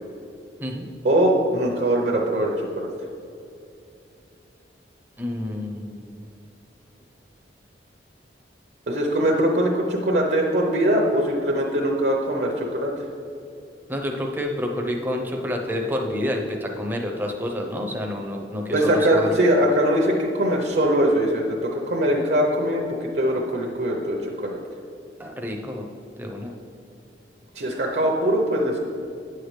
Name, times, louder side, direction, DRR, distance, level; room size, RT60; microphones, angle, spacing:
voice 1, 1.0-2.9 8.9-13.0 18.7-24.6 27.5-28.8, equal, 60° right, 0 dB, 0.8 m, -22 dB
voice 2, 5.2-6.3 13.9-19.4 25.2-25.9 26.2-26.5, left 1 dB, 10° right, 1 dB, 0.6 m, -29 dB
9.2 x 6.5 x 3.2 m, 2.6 s
head